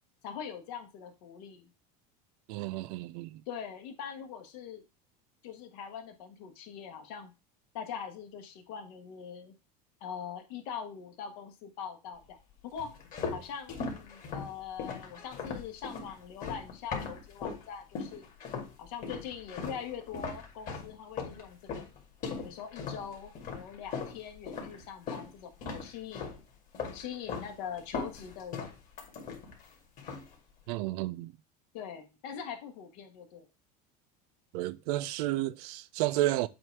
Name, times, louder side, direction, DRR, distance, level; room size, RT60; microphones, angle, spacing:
voice 1, 0.2-1.7 3.5-4.8 5.4-7.3 7.7-9.5 10.0-12.4 12.6-12.9 13.3-18.2 18.8-21.9 22.4-26.3 26.9-28.7 31.7-33.5, left 7 dB, 75° left, 1.5 m, -42 dB
voice 2, 2.5-3.4 30.7-31.3 34.5-36.5, right 16 dB, 75° right, 0.5 m, -31 dB
sound 1, 12.8-17.6 17.9-18.7 19.0-25.3 25.6-26.4 26.7-27.5 27.8-29.7 30.0-30.3, left 5 dB, 40° left, 2.2 m, -39 dB
7.7 x 2.7 x 4.6 m
supercardioid pair, 130°, 20 cm